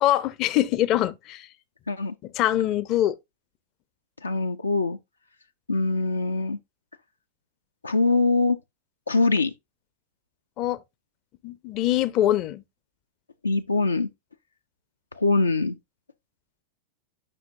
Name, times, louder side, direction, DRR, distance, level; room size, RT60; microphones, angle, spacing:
voice 1, 0.0-1.5 2.3-3.2 10.6-10.8 11.4-12.6, left 13 dB, 40° left, 0.6 m, -23 dB
voice 2, 4.2-5.0 5.7-6.6 7.8-8.6 9.1-9.5 13.4-14.1 15.2-15.8, left 3 dB, 80° left, 0.5 m, -23 dB
9.9 x 5.7 x 2.5 m
figure-of-eight pair, 90°, 0 cm